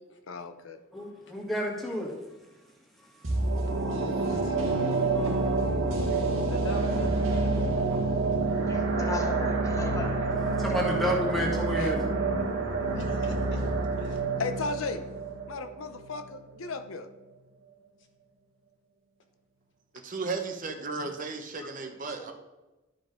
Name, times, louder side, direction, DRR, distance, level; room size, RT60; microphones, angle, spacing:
voice 1, 0.3-0.8 4.3-4.6 11.8-11.9 14.4-15.0 15.5-17.1, left 4 dB, 85° left, 9 dB, 0.7 m, -35 dB
voice 2, 0.9-2.1 3.7-3.9 4.6-4.8 5.1-5.5 5.9-6.2 10.6-12.0, equal, ahead, -3 dB, 1.9 m, -31 dB
sound 1, 3.2-16.3 16.7-16.8, right 3 dB, 80° right, 1.5 m, -28 dB
voice 3, 6.5-7.5 9.9-10.1 13.0-13.6 14.0-14.2, left 1 dB, 65° left, 4 dB, 1.3 m, -43 dB
voice 4, 8.7-10.2 21.6-21.7 22.2-22.3, left 2 dB, 15° left, 3 dB, 0.9 m, -37 dB
voice 5, 20.0-22.3, right 4 dB, 40° right, 5 dB, 0.8 m, -34 dB
11.5 x 5.3 x 3.8 m, 1.1 s
head